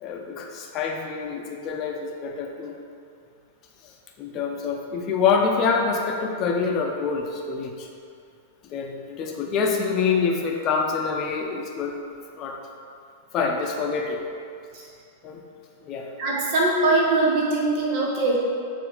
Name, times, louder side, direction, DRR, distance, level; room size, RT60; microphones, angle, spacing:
voice 1, 0.0-2.8 3.8-3.9 4.2-7.9 8.7-12.0 12.4-12.6 13.3-14.2 15.2-15.4 15.8-16.1, left 5 dB, 40° left, 1 dB, 0.8 m, -26 dB
voice 2, 16.2-18.4, right 2 dB, 45° right, -3 dB, 1.2 m, -22 dB
7.1 x 3.0 x 4.9 m, 2.4 s
figure-of-eight pair, 95°, 0 cm